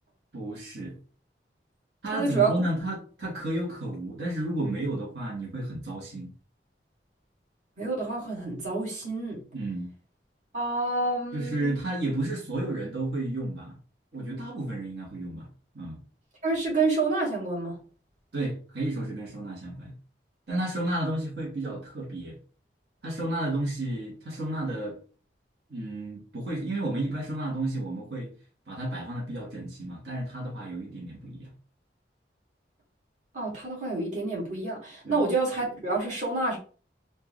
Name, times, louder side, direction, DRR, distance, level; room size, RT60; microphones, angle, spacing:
voice 1, 0.3-1.0 2.0-6.3 9.5-9.9 11.3-13.8 14.1-15.5 15.7-16.0 18.3-19.9 20.5-22.4 23.0-25.0 25.7-28.3 28.7-31.5 35.0-35.2, right 1 dB, 65° right, 1.3 m, -32 dB
voice 2, 2.1-2.6 7.8-9.4 10.5-11.7 16.4-17.7 33.3-36.6, right 3 dB, 40° right, 2.0 m, -28 dB
4.5 x 2.6 x 3.0 m
head